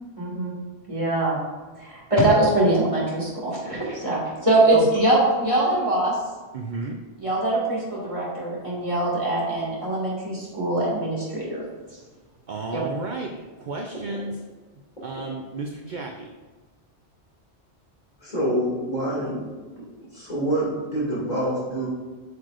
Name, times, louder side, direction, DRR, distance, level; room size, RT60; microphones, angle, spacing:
voice 1, 0.2-0.5 0.9-1.4 1.8-6.2 7.2-11.6 12.7-12.8, right 2 dB, 30° right, -7 dB, 2.2 m, -23 dB
voice 2, 6.5-7.0 12.5-13.3 13.6-14.3 15.0-16.3, right 3 dB, 55° right, 2 dB, 0.7 m, -32 dB
voice 3, 18.2-19.5 19.8-21.9, right 1 dB, 40° left, -7 dB, 2.5 m, -26 dB
8.0 x 6.4 x 2.5 m, 1.3 s
omnidirectional pair, 1.1 m